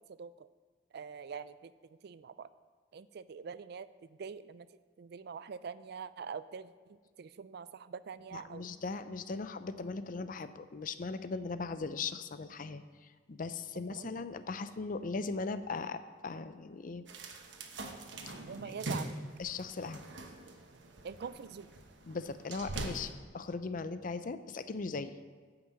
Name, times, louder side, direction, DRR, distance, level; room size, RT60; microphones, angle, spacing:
voice 1, 0.1-0.5 0.9-1.7 2.0-2.5 2.9-4.7 5.0-8.7 13.7-14.1 18.5-19.1 21.0-21.7, right 6 dB, 60° right, 15 dB, 0.4 m, -44 dB
voice 2, 8.3-12.8 13.3-17.0 18.3-18.4 19.4-20.0 22.1-25.2, left 4 dB, 50° left, 12 dB, 0.5 m, -39 dB
sound 1, 17.1-23.1, right 2 dB, 85° right, 1.1 m, -43 dB
9.3 x 5.9 x 7.7 m, 1.5 s
head